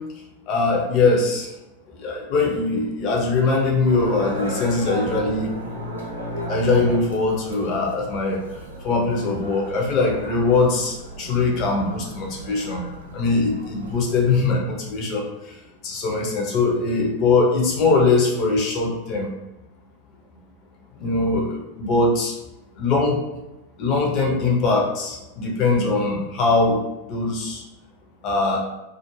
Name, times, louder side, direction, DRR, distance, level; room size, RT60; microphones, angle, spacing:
voice 1, 0.5-1.5 1.9-5.5 6.5-8.4 8.8-12.8 13.1-15.3 15.8-19.3 21.0-22.3 22.8-23.2 23.8-26.8 27.1-27.6 28.2-28.6, left 3 dB, 40° left, -1 dB, 0.7 m, -21 dB
sound 1, 3.9-14.2, right 1 dB, 75° right, 0.5 m, -34 dB
2.4 x 2.1 x 3.0 m, 0.98 s
figure-of-eight pair, 90°, 0 cm